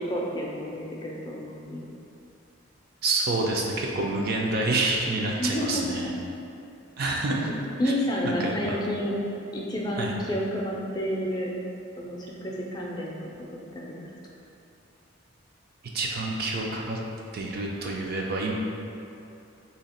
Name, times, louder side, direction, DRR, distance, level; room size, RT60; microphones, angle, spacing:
voice 1, 0.0-1.8 5.4-6.1 7.4-7.5 7.8-9.1 9.5-11.5 12.0-13.3 13.7-14.1, equal, 20° left, -3 dB, 0.4 m, -30 dB
voice 2, 3.0-6.1 7.0-7.5 7.8-7.9 8.2-8.8 10.0-10.1 15.9-17.0 17.3-18.6, right 2 dB, 50° right, -1 dB, 0.4 m, -27 dB
2.8 x 2.8 x 4.2 m, 2.7 s
head